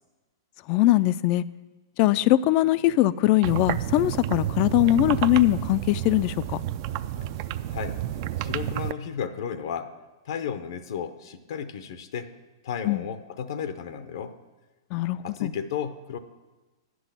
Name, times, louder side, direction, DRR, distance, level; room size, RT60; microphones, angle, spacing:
voice 1, 0.7-1.4 2.0-6.3 12.9-13.0 14.9-15.5, left 15 dB, 40° left, 17 dB, 0.3 m, -21 dB
sound 1, 3.4-8.9, right 12 dB, 50° right, 0.4 m, -30 dB
voice 2, 8.4-9.9 10.3-12.3 12.6-14.3 15.2-16.2, left 7 dB, 70° left, 10 dB, 0.7 m, -33 dB
9.6 x 6.1 x 7.4 m, 1.2 s
hypercardioid pair, 135°, 2 cm